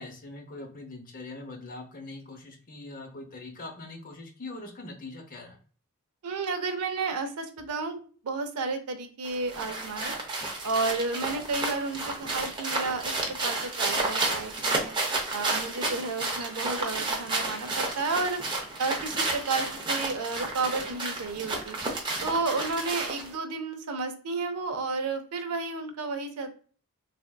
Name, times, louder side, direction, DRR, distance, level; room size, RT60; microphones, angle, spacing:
voice 1, 0.0-5.6, left 2 dB, 40° left, 3 dB, 0.7 m, -42 dB
voice 2, 6.2-8.0 8.2-10.1 10.6-13.1 13.4-14.9 15.3-21.8 22.2-26.5, right 3 dB, 85° right, 6 dB, 0.6 m, -32 dB
sound 1, 9.2-23.3, right 2 dB, 20° right, 0.6 m, -31 dB
3.4 x 2.6 x 2.2 m, 0.42 s
head